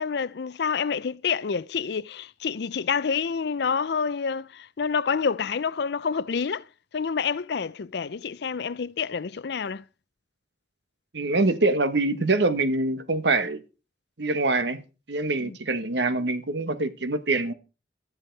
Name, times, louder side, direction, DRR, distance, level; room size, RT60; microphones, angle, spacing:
voice 1, 0.0-6.7 6.9-9.8 15.4-15.6, left 6 dB, 65° left, 0.5 m, -28 dB
voice 2, 11.1-13.6 14.2-14.8 15.1-17.5, right 2 dB, 70° right, 1.3 m, -24 dB
12.5 x 10.5 x 4.6 m
head